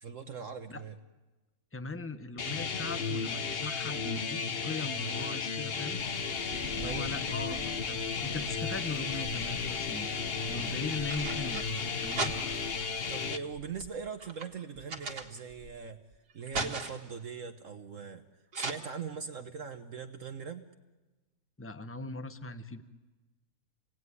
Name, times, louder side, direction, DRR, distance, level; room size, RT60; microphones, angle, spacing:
voice 1, 0.0-1.0 6.8-7.3 13.1-16.0 16.3-18.2 18.5-20.7, right 6 dB, 55° right, 7 dB, 1.3 m, -41 dB
voice 2, 1.7-6.0 6.7-10.1 10.5-11.7 12.0-12.3 21.6-22.8, left 3 dB, 10° left, 10 dB, 0.8 m, -39 dB
sound 1, 2.4-13.4, left 5 dB, 45° left, 1.1 m, -34 dB
sound 2, 6.0-13.3, right 2 dB, 15° right, 1.9 m, -48 dB
sound 3, 9.0-9.8 10.7-12.8 13.5-15.7 16.1-17.2 18.5-18.7, right 3 dB, 85° right, 2.5 m, -38 dB
28.5 x 19.0 x 9.6 m, 1.2 s
omnidirectional pair, 1.7 m